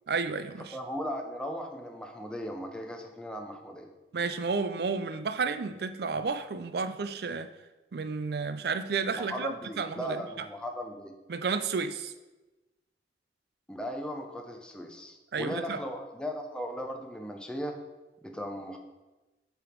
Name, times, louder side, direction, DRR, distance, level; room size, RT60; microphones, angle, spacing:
voice 1, 0.1-0.7 4.1-7.5 7.9-10.2 11.3-12.1 15.3-15.8, right 4 dB, 60° right, 11 dB, 0.4 m, -31 dB
voice 2, 0.7-3.9 9.2-11.1 13.7-17.8 18.2-18.8, equal, 5° left, 2 dB, 0.6 m, -37 dB
8.6 x 3.5 x 4.5 m, 1.1 s
head